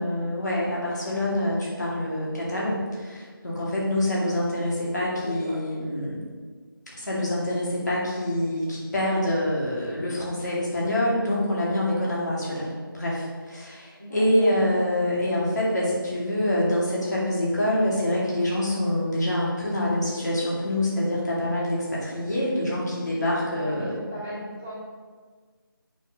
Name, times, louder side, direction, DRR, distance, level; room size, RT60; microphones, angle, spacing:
voice 1, 0.0-6.2 6.9-23.9, left 1 dB, 50° left, -6 dB, 2.5 m, -26 dB
voice 2, 5.2-5.6 14.0-14.7 23.6-24.9, equal, 5° left, -8 dB, 0.6 m, -37 dB
6.4 x 4.8 x 6.4 m, 1.5 s
figure-of-eight pair, 175°, 12 cm